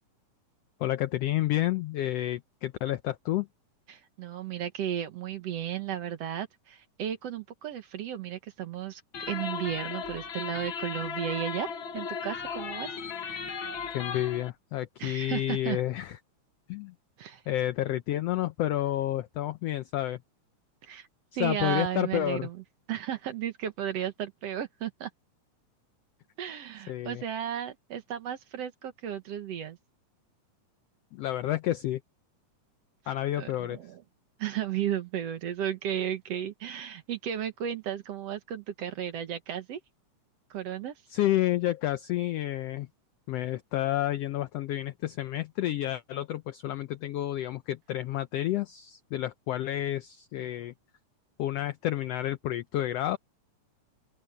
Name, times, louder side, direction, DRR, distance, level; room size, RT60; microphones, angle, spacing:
voice 1, 0.8-3.5 13.9-16.2 16.7-16.9 17.5-20.2 21.4-22.5 26.9-27.2 31.1-32.0 33.1-33.8 41.1-42.9 43.3-50.7 51.4-53.2, left 13 dB, 85° left, 1.4 m, -30 dB
voice 2, 3.9-9.0 9.3-12.9 15.0-15.8 17.2-17.4 20.8-21.1 21.3-22.6 22.9-25.1 26.4-29.8 33.4-34.0 34.4-39.8 40.5-41.0, right 10 dB, 60° right, 2.1 m, -34 dB
sound 1, 9.1-14.5, left 6 dB, 50° left, 1.9 m, -36 dB
open air
omnidirectional pair, 3.6 m